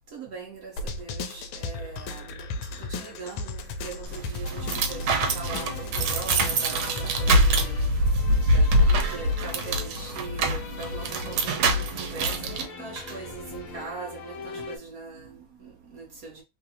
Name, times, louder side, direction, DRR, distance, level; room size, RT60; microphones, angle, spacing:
voice 1, 0.1-7.9 8.5-16.4, right 4 dB, 60° right, 1.0 m, -41 dB
sound 1, 0.8-7.7, left 2 dB, 85° left, 1.4 m, -34 dB
sound 2, 4.1-12.7, right 1 dB, 80° right, 1.4 m, -24 dB
sound 3, 4.4-14.8, left 4 dB, 65° left, 1.0 m, -41 dB
3.4 x 2.5 x 2.7 m
omnidirectional pair, 2.2 m